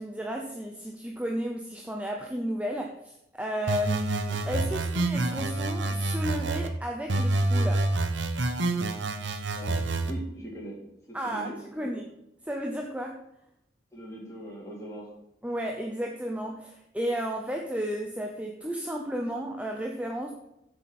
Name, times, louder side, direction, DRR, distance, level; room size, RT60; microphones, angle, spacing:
voice 1, 0.0-7.9 11.1-12.1 12.4-13.3 15.4-20.3, equal, 5° right, 1 dB, 0.8 m, -33 dB
sound 1, 3.7-6.7 7.1-10.1, right 2 dB, 90° right, 1.0 m, -27 dB
voice 2, 9.5-10.8 11.1-11.9 13.9-15.1, right 1 dB, 15° left, -4 dB, 3.6 m, -41 dB
8.0 x 6.9 x 7.8 m, 0.83 s
head